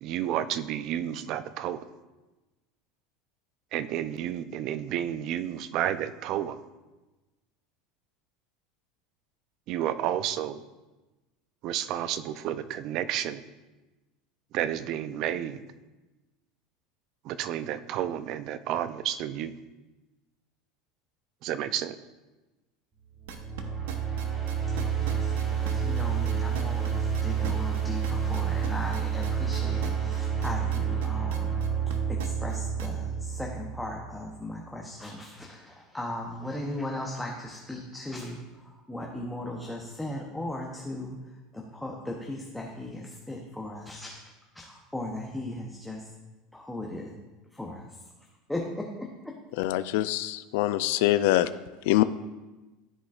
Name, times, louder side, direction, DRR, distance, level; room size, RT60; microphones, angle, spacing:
voice 1, 0.0-1.8 3.7-6.6 9.7-10.6 11.6-13.4 14.5-15.6 17.2-19.5 21.4-22.0, right 11 dB, 50° right, 13 dB, 0.4 m, -31 dB
sound 1, 23.2-34.2, right 7 dB, 20° right, 1.7 m, -29 dB
sound 2, 23.3-33.0, right 6 dB, 85° right, 0.8 m, -41 dB
voice 2, 25.0-31.6 31.9-41.2 41.5-44.2 44.5-46.1 46.5-47.1 47.5-47.8 48.5-49.3, left 1 dB, 5° left, -1 dB, 0.7 m, -37 dB
voice 3, 49.6-51.5 51.9-52.0, left 15 dB, 70° left, 14 dB, 0.4 m, -24 dB
13.5 x 5.0 x 2.4 m, 1.1 s
supercardioid pair, 140°, 0 cm